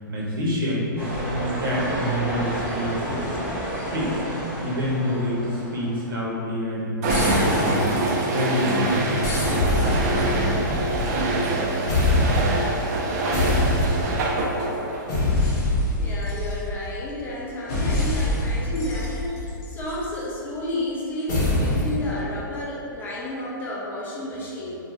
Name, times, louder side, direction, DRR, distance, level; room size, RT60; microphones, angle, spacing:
voice 1, 0.0-0.9 1.2-3.2 3.8-4.2 4.6-7.9 8.3-9.1, equal, 80° right, -5 dB, 0.8 m, -27 dB
sound 1, 1.0-6.1, equal, 15° right, 0.9 m, -31 dB
sound 2, 7.0-15.2, right 2 dB, 50° right, 0.4 m, -25 dB
sound 3, 7.1-8.7 9.2-11.6 11.9-12.7 13.3-14.3 15.1-17.0 17.7-20.1 21.3-22.0, left 1 dB, 45° left, 0.9 m, -24 dB
voice 2, 15.9-24.8, left 1 dB, 15° left, -6 dB, 0.6 m, -31 dB
2.5 x 2.2 x 3.1 m, 2.5 s
hypercardioid pair, 130°, 11 cm